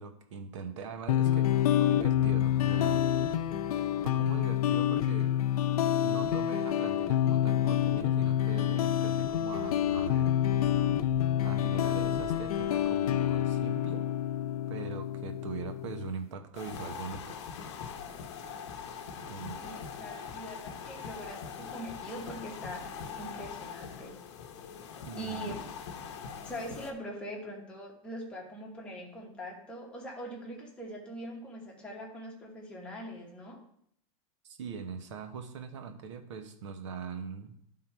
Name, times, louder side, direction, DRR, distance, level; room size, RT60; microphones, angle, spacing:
voice 1, 0.0-1.5 1.8-3.0 4.0-5.3 6.0-10.3 11.4-14.1 14.7-17.5 17.9-18.0 19.2-19.6 25.1-25.5 34.4-37.6, right 5 dB, 55° right, 7 dB, 1.0 m, -41 dB
sound 1, 1.1-16.1, left 11 dB, 85° left, 0.5 m, -28 dB
sound 2, 7.4-14.5, right 1 dB, 30° right, 0.6 m, -46 dB
sound 3, 16.5-26.9, left 6 dB, 50° left, 0.9 m, -42 dB
voice 2, 19.5-24.2 25.2-25.6 26.4-33.6, equal, 5° left, -3 dB, 1.2 m, -42 dB
11.5 x 3.8 x 4.5 m, 0.66 s
supercardioid pair, 180°, 18 cm